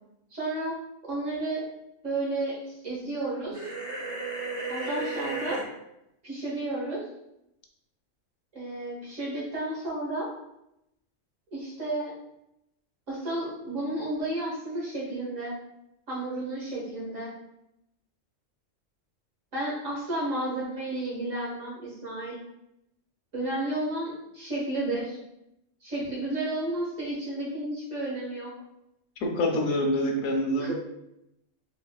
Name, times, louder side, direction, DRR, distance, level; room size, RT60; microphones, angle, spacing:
voice 1, 0.3-1.7 2.0-2.6 2.8-3.7 4.7-5.6 6.2-7.1 8.5-10.3 11.5-12.1 13.1-15.5 16.1-17.3 19.5-22.4 23.3-25.2 25.8-28.5 30.6-30.7, right 1 dB, 75° right, -6 dB, 1.9 m, -32 dB
sound 1, 3.5-5.6, right 3 dB, 30° right, 0.9 m, -33 dB
voice 2, 29.2-30.7, left 1 dB, 85° left, 1 dB, 1.1 m, -26 dB
4.1 x 3.6 x 2.3 m, 0.82 s
omnidirectional pair, 1.3 m